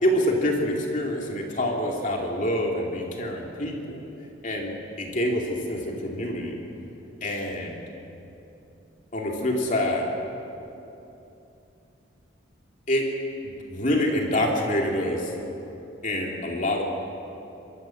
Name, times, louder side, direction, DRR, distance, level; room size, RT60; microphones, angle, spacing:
voice 1, 0.0-4.0 4.4-6.5 7.2-7.8 9.1-10.1 12.9-13.1 13.4-15.3 16.0-16.8, left 1 dB, 40° left, 0 dB, 2.7 m, -26 dB
26.0 x 13.5 x 7.7 m, 2.9 s
head